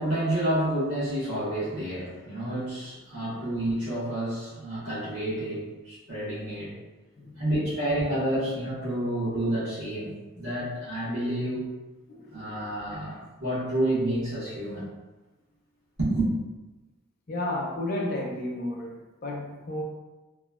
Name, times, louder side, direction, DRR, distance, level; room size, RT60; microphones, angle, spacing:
voice 1, 0.0-6.7 7.4-11.7 12.3-14.9 16.0-16.3, right 1 dB, 85° right, -11 dB, 1.3 m, -29 dB
voice 2, 12.1-12.7 17.3-19.8, left 1 dB, 40° left, -1 dB, 0.5 m, -33 dB
3.0 x 2.3 x 2.3 m, 1.1 s
head